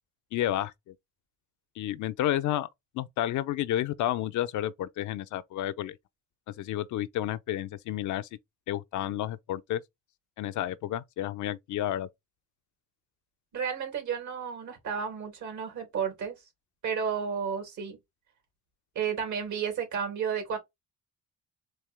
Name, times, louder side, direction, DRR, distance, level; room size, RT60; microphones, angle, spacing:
voice 1, 0.3-0.9 1.8-2.7 2.9-6.0 6.6-8.3 8.7-9.8 10.4-12.1, left 12 dB, 75° left, 0.6 m, -31 dB
voice 2, 13.5-16.3 16.8-18.0 18.9-20.6, right 7 dB, 75° right, 2.6 m, -32 dB
4.3 x 2.8 x 3.4 m
cardioid pair, 90°, 30 cm